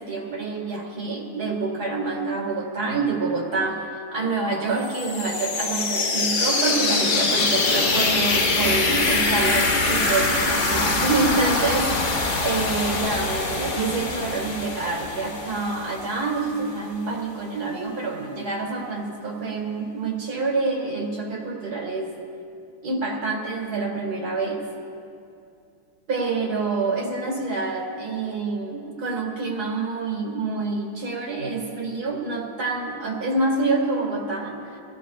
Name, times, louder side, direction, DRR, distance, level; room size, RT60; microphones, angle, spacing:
voice 1, 0.0-22.2 22.8-24.7 26.1-34.8, right 3 dB, 55° right, -1 dB, 2.5 m, -27 dB
sound 1, 4.8-16.5, left 3 dB, 45° left, 1.3 m, -24 dB
25.0 x 15.5 x 2.4 m, 2.6 s
omnidirectional pair, 2.1 m